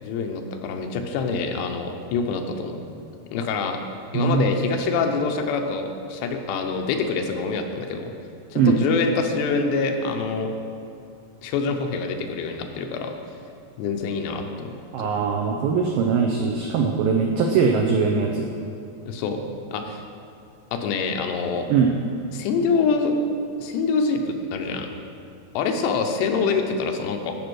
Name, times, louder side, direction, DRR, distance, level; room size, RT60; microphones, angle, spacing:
voice 1, 0.0-2.8 3.3-3.8 4.1-8.1 8.5-10.5 11.4-13.1 13.8-15.2 19.1-19.4 19.7-20.0 20.7-21.7 22.3-23.2 23.6-24.9 25.5-27.4, left 4 dB, 85° left, 4 dB, 3.1 m, -25 dB
voice 2, 4.1-4.6 8.6-8.8 14.9-18.5 21.7-21.9, right 5 dB, 90° right, 1 dB, 2.0 m, -21 dB
14.5 x 5.2 x 6.3 m, 2.5 s
omnidirectional pair, 4.9 m